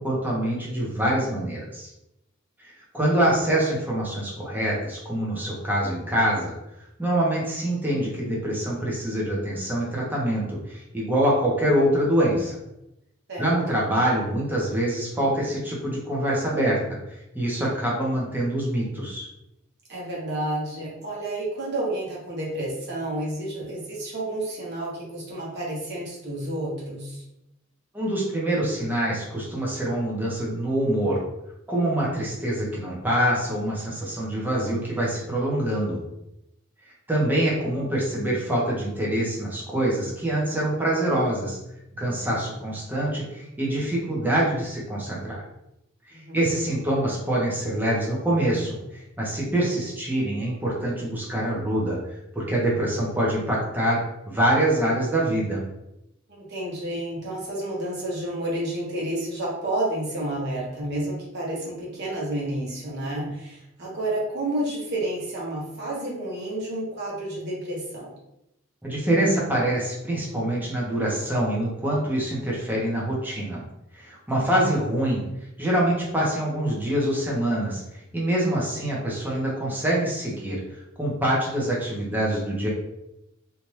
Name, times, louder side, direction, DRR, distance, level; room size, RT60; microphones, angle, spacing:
voice 1, 0.0-1.9 2.9-6.5 7.0-12.6 13.4-16.8 17.3-19.3 27.9-31.2 31.7-36.0 37.1-41.6 41.9-45.4 46.3-52.0 52.3-55.6 68.8-73.6 74.0-75.2 75.6-80.6 81.0-82.7, right 1 dB, 10° right, -5 dB, 0.8 m, -25 dB
voice 2, 13.3-13.9 19.9-27.2 46.1-46.4 56.3-68.1 74.3-74.6, right 1 dB, 55° right, -5 dB, 1.1 m, -30 dB
2.8 x 2.4 x 3.2 m, 0.86 s
head